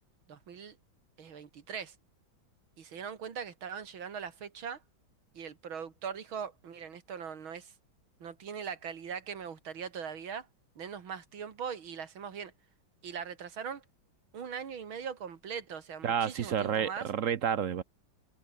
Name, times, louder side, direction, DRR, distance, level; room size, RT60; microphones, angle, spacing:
voice 1, 0.3-0.8 1.2-2.0 2.8-4.8 5.3-7.7 8.2-10.5 10.8-12.5 13.0-13.8 14.3-17.1, right 7 dB, 85° right, 2.9 m, -41 dB
voice 2, 16.0-17.8, right 8 dB, 55° right, 0.9 m, -30 dB
omnidirectional pair, 2.2 m